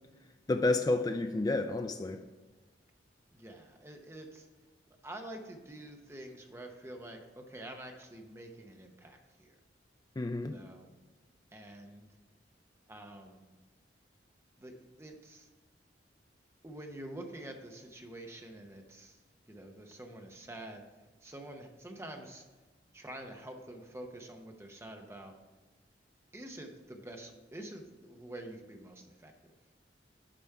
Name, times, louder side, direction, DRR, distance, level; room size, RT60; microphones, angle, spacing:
voice 1, 0.5-2.2 10.2-10.5, left 2 dB, 20° left, 7 dB, 0.3 m, -30 dB
voice 2, 3.3-4.5 5.0-9.5 10.4-10.9 11.5-12.1 12.9-13.4 14.6-15.5 16.6-19.2 19.5-20.8 21.2-22.4 22.9-25.4 26.3-29.3, right 1 dB, 15° right, 3 dB, 0.8 m, -47 dB
8.9 x 5.1 x 4.7 m, 1.3 s
head